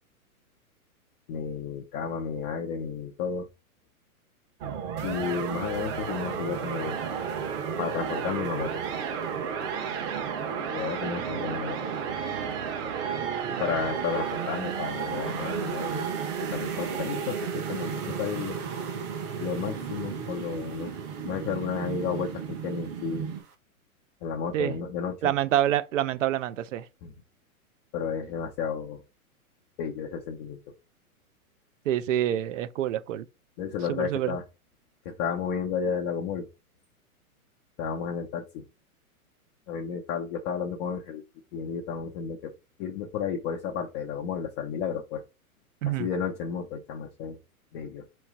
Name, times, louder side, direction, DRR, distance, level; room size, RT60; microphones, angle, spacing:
voice 1, 1.3-3.5 5.0-7.0 7.8-8.8 10.7-11.8 13.6-16.0 16.4-18.6 19.4-20.9 21.2-23.3 24.2-25.3 27.0-27.1 27.9-29.0 29.8-30.6 33.6-34.4 35.1-36.5 37.8-38.6 39.7-41.2 41.5-42.5 42.8-45.2 45.8-47.4 47.7-48.1, left 6 dB, 20° left, 0.4 m, -32 dB
sound 1, 4.6-23.4, right 7 dB, 40° right, 1.1 m, -33 dB
sound 2, 5.0-23.5, right 6 dB, 80° right, 1.2 m, -44 dB
voice 2, 13.1-13.6 24.5-24.7 25.2-26.9 31.9-33.2 33.9-34.4 45.8-46.1, right 12 dB, 60° right, 0.6 m, -27 dB
4.4 x 3.1 x 3.5 m
hypercardioid pair, 125°, 44 cm